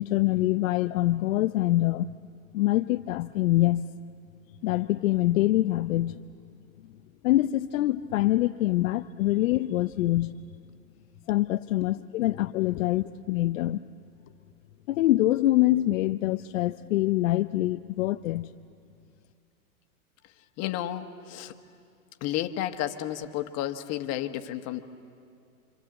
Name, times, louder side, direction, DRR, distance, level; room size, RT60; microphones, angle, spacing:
voice 1, 0.0-2.1 2.5-3.9 4.6-6.2 7.2-10.4 11.3-13.8 14.9-18.5, left 16 dB, 65° left, 8 dB, 0.7 m, -25 dB
voice 2, 20.6-21.5 22.2-24.8, left 12 dB, 35° left, 7 dB, 1.4 m, -32 dB
27.0 x 26.0 x 7.9 m, 2.4 s
hypercardioid pair, 125°, 43 cm